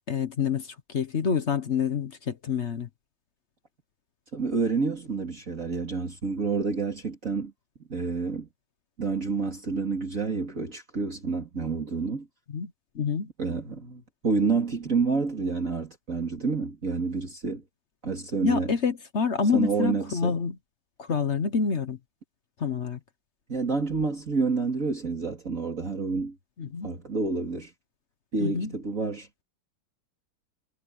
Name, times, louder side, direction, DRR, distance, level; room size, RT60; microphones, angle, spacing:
voice 1, 0.1-2.9 12.5-12.7 12.9-13.3 18.4-20.6 21.0-22.0 22.6-23.0 26.6-26.9 28.4-28.7, left 6 dB, 45° left, 1.0 m, -27 dB
voice 2, 4.3-7.5 7.9-8.5 9.0-12.3 13.4-17.6 18.0-18.7 19.5-20.4 23.5-26.4 26.8-27.7 28.3-29.3, right 4 dB, 40° right, 3.2 m, -28 dB
omnidirectional pair, 2.2 m